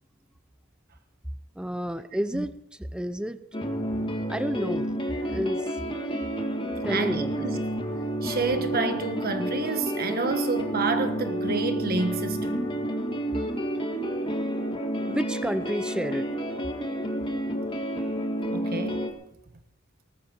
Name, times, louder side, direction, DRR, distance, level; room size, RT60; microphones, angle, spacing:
voice 1, 1.6-2.5 2.8-3.6 4.3-5.0 5.3-5.7 6.8-7.3 15.1-16.2, equal, 5° right, 0.6 m, -30 dB
sound 1, 3.5-19.1, right 1 dB, 25° left, 1.8 m, -30 dB
voice 2, 6.9-7.6 8.2-12.6 18.5-19.1, right 3 dB, 45° right, 1.3 m, -29 dB
19.5 x 14.0 x 4.5 m
head